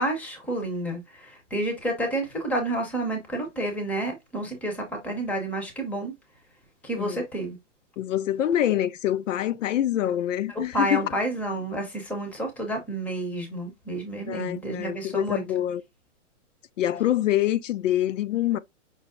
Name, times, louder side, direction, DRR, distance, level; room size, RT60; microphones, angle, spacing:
voice 1, 0.0-6.1 6.8-7.6 10.7-15.4, right 1 dB, 5° left, 0.7 m, -30 dB
voice 2, 8.0-11.0 14.2-15.8 16.8-18.6, left 12 dB, 80° left, 0.6 m, -25 dB
5.5 x 2.0 x 3.6 m
hypercardioid pair, 155°, 37 cm